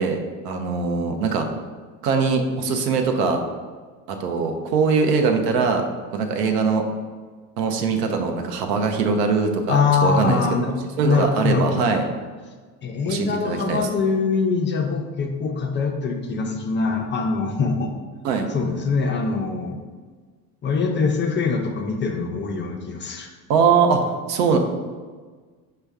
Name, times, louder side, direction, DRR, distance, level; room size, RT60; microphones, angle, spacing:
voice 1, 0.0-1.5 2.0-3.4 4.1-6.8 7.6-10.6 11.0-12.0 13.1-13.8 18.2-18.5 23.5-24.0 24.3-24.6, right 5 dB, 85° right, 5 dB, 0.6 m, -22 dB
voice 2, 9.7-10.7 11.0-11.8 12.8-17.9 18.5-19.8 20.6-23.3, left 4 dB, 25° left, 3 dB, 0.3 m, -23 dB
5.2 x 2.2 x 3.4 m, 1.4 s
hypercardioid pair, 75°, 47 cm